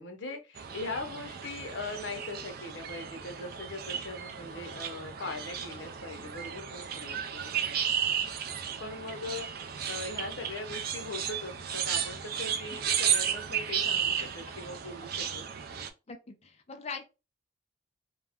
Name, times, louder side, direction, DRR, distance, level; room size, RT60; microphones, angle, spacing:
voice 1, 0.0-7.6 8.8-9.5 9.9-15.4, left 3 dB, 70° left, 0.7 m, -40 dB
sound 1, 0.6-15.9, right 8 dB, 50° right, 0.4 m, -34 dB
voice 2, 16.1-17.0, left 5 dB, 35° left, 0.4 m, -41 dB
2.3 x 2.1 x 3.4 m
head